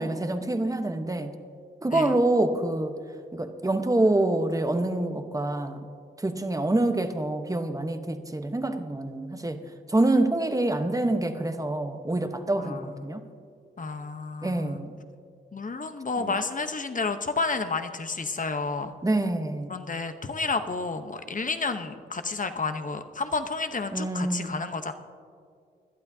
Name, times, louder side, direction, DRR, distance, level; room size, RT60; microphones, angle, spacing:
voice 1, 0.0-1.4 1.8-3.0 3.3-5.8 6.2-9.6 9.9-13.2 14.4-15.0 16.2-16.3 19.0-19.8 23.9-24.6, right 2 dB, 15° right, 7 dB, 1.0 m, -26 dB
voice 2, 12.6-13.1 13.8-14.8 15.5-18.9 19.7-24.9, left 4 dB, 40° left, 8 dB, 0.9 m, -31 dB
20.5 x 12.0 x 2.8 m, 2.3 s
cardioid pair, 50°, 21 cm